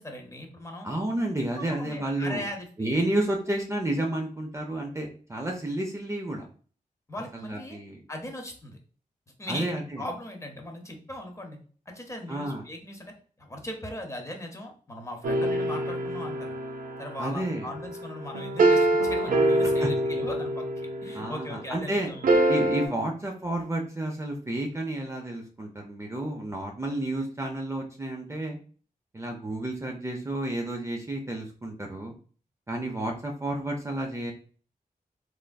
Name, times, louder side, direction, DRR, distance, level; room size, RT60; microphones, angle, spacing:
voice 1, 0.0-0.9 1.6-3.0 7.1-7.8 8.1-8.8 9.4-11.6 11.9-13.1 13.4-16.5 17.0-20.6 21.0-22.3, left 1 dB, 20° left, 2 dB, 0.6 m, -39 dB
voice 2, 0.8-2.4 2.8-6.4 7.3-8.0 9.5-10.0 12.3-12.6 17.2-17.7 19.6-19.9 21.1-22.1 22.5-28.6 29.1-32.1 32.7-34.3, right 1 dB, 20° right, 1 dB, 0.4 m, -31 dB
sound 1, 15.2-21.5 22.2-22.9, right 2 dB, 70° right, 0.5 m, -25 dB
3.2 x 2.4 x 2.2 m, 0.42 s
wide cardioid pair, 100°, 15 cm